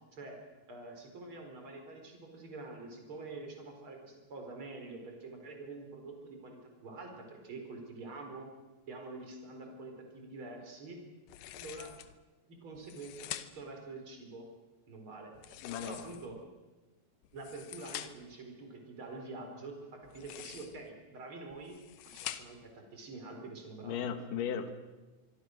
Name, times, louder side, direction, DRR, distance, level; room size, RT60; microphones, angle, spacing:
voice 1, 0.7-8.5 8.8-11.0 11.5-11.9 12.5-14.5 14.9-15.3 15.8-16.4 17.3-21.8 22.0-24.1, right 3 dB, 30° right, 3 dB, 4.7 m, -46 dB
sound 1, 11.3-12.2 12.8-13.8 15.3-16.4 17.2-18.4 20.0-20.9 21.5-22.7, left 13 dB, 80° left, 2.0 m, -46 dB
voice 2, 15.6-16.0 23.8-24.7, left 8 dB, 60° left, 9 dB, 2.7 m, -36 dB
25.5 x 23.5 x 6.5 m, 1.2 s
omnidirectional pair, 5.0 m